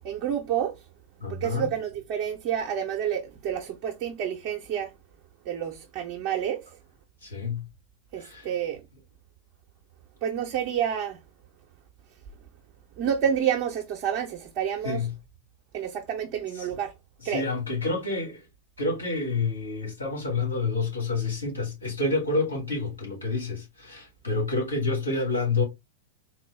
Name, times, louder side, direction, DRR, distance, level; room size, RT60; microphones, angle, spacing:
voice 1, 0.0-0.7 1.4-4.9 5.5-6.8 8.1-8.8 10.2-11.2 13.0-15.1 15.7-16.9 17.2-17.5, right 9 dB, 40° right, 0.7 m, -29 dB
voice 2, 1.2-1.7 7.2-7.6 8.2-8.5 14.8-15.1 17.2-18.4 18.8-25.6, left 3 dB, 75° left, 2.1 m, -28 dB
4.1 x 2.2 x 3.1 m
figure-of-eight pair, 90°, 0 cm